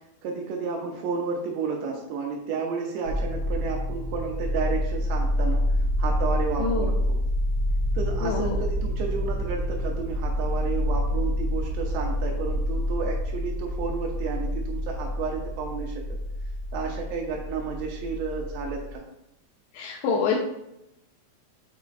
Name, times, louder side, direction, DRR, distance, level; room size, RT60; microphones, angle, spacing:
voice 1, 0.2-5.6 6.0-7.2 7.9-15.9 16.7-19.0, right 5 dB, 80° right, -1 dB, 3.0 m, -31 dB
sound 1, 3.1-18.9, equal, 65° right, 1.9 m, -28 dB
voice 2, 6.6-6.9 8.2-8.6 19.7-20.4, left 5 dB, 85° left, -3 dB, 2.9 m, -26 dB
7.7 x 5.2 x 2.5 m, 0.85 s
omnidirectional pair, 5.0 m